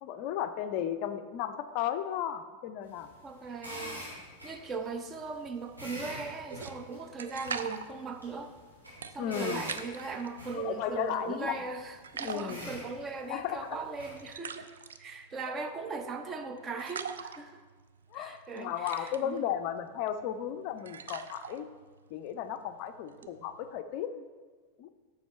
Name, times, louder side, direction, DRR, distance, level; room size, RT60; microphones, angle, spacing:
voice 1, 0.0-3.1 9.2-9.7 10.5-11.6 12.2-12.7 13.3-13.8 15.4-15.7 18.1-21.7 22.1-24.3 24.8-24.9, left 10 dB, 45° left, 10 dB, 0.4 m, -35 dB
sound 1, 2.8-14.3, equal, 85° right, 2.5 m, -46 dB
voice 2, 3.2-4.1 4.4-8.5 9.1-14.7 15.0-17.6 18.1-19.5 23.2-23.3, right 4 dB, 25° right, 7 dB, 0.6 m, -39 dB
sound 2, 6.5-10.3 10.7-11.7 12.0-23.8, right 6 dB, 65° right, 0.4 m, -44 dB
7.1 x 6.1 x 4.3 m, 1.4 s
figure-of-eight pair, 90°, 0 cm